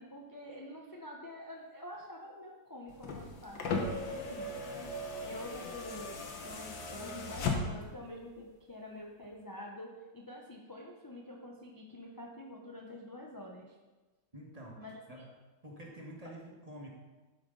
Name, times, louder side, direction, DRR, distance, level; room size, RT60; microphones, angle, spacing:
voice 1, 0.0-4.5 5.0-13.8 14.8-15.2, left 1 dB, 20° left, -1 dB, 0.6 m, -47 dB
sound 1, 2.9-8.0 9.2-9.3, left 3 dB, 80° left, 2.1 m, -37 dB
voice 2, 14.3-15.3 15.6-16.9, right 1 dB, 20° right, -1 dB, 1.5 m, -48 dB
12.0 x 8.7 x 4.0 m, 1.2 s
omnidirectional pair, 2.0 m